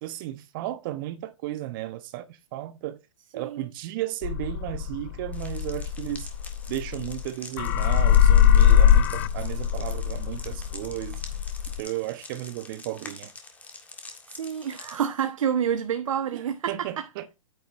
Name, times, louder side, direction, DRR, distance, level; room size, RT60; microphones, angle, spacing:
voice 1, 0.0-3.0 3.3-6.3 6.7-11.2 11.7-13.3 16.3-17.3, right 14 dB, 40° right, 1.0 m, -34 dB
sound 1, 4.2-7.3 7.6-11.8, left 9 dB, 40° left, 0.5 m, -21 dB
sound 2, 5.3-15.0, left 3 dB, 10° left, 1.6 m, -45 dB
voice 2, 14.3-16.7, right 8 dB, 65° right, 1.1 m, -28 dB
9.9 x 9.3 x 2.6 m
hypercardioid pair, 130°, 18 cm